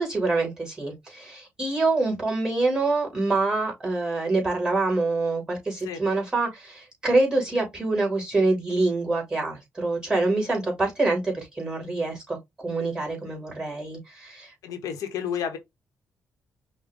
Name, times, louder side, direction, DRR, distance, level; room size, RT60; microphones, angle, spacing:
voice 1, 0.0-14.5, right 3 dB, 15° right, 2.9 m, -26 dB
voice 2, 14.6-15.6, left 8 dB, 85° left, 0.9 m, -31 dB
5.4 x 2.1 x 3.5 m
cardioid pair, 95°, 6 cm